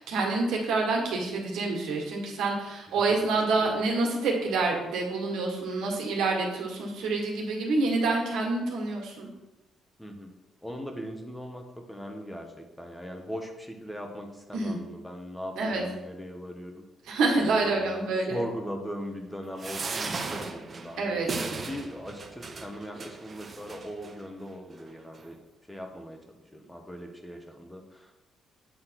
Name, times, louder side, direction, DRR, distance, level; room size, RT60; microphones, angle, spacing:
voice 1, 0.0-9.3 14.5-14.8 15.6-15.8 17.0-18.4 21.0-21.3, right 3 dB, 80° right, 0 dB, 1.7 m, -27 dB
voice 2, 10.0-10.3 10.6-16.8 17.3-21.3 21.6-25.4 25.7-26.2 26.5-28.2, equal, 5° left, 3 dB, 1.1 m, -39 dB
sound 1, 19.6-24.1 24.8-24.9 25.1-25.3, right 4 dB, 40° right, 0.8 m, -36 dB
8.1 x 3.2 x 5.9 m, 1.0 s
cardioid pair, 90°, 0 cm